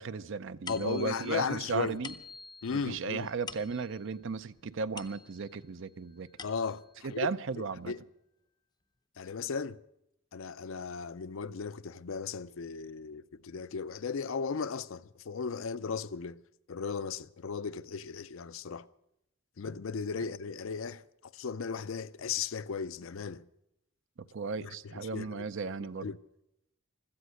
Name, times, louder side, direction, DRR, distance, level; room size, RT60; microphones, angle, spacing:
voice 1, 0.0-2.1 2.7-6.3 7.0-7.9 24.3-26.1, right 4 dB, 60° right, 0.5 m, -35 dB
voice 2, 0.7-2.0 2.6-3.3 6.4-8.0 9.2-9.8 10.3-16.4 16.7-18.9 19.6-23.5 24.6-26.2, left 5 dB, 65° left, 0.5 m, -36 dB
sound 1, 0.7-5.6 6.1-7.0, left 5 dB, 20° left, 0.6 m, -48 dB
16.5 x 13.0 x 6.4 m
head